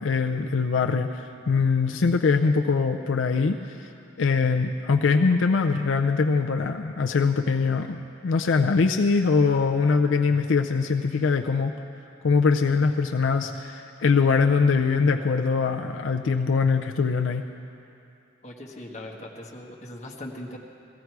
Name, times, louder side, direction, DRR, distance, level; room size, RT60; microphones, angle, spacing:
voice 1, 0.0-3.9 4.2-11.7 12.2-17.4, left 4 dB, 80° left, 4 dB, 0.5 m, -22 dB
voice 2, 18.4-20.6, left 1 dB, 35° left, -1 dB, 1.4 m, -39 dB
17.0 x 15.0 x 4.7 m, 2.7 s
head